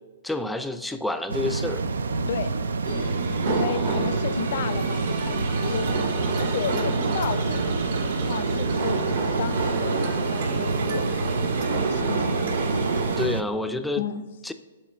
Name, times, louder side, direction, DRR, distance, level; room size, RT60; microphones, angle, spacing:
voice 1, 0.2-1.8 3.5-4.0 13.2-14.0 14.4-14.5, left 2 dB, 5° left, 8 dB, 0.4 m, -29 dB
sound 1, 1.3-13.4, right 4 dB, 85° right, 0.4 m, -28 dB
sound 2, 1.7-9.6, left 3 dB, 85° left, 0.8 m, -45 dB
voice 2, 2.3-6.1 6.4-11.3 11.6-12.5 14.0-14.2, left 7 dB, 55° left, 13 dB, 0.5 m, -33 dB
sound 3, 2.8-13.3, right 3 dB, 65° right, 1.5 m, -29 dB
7.5 x 4.3 x 5.0 m, 1.3 s
hypercardioid pair, 140°, 0 cm